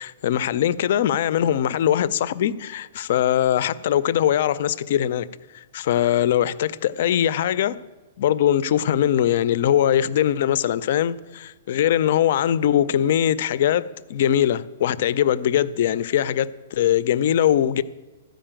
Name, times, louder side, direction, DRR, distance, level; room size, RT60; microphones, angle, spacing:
voice 1, 0.0-5.3 5.5-7.8 8.2-17.8, left 10 dB, 45° left, 0.3 m, -21 dB
13.0 x 5.1 x 8.8 m
hypercardioid pair, 175°, 0 cm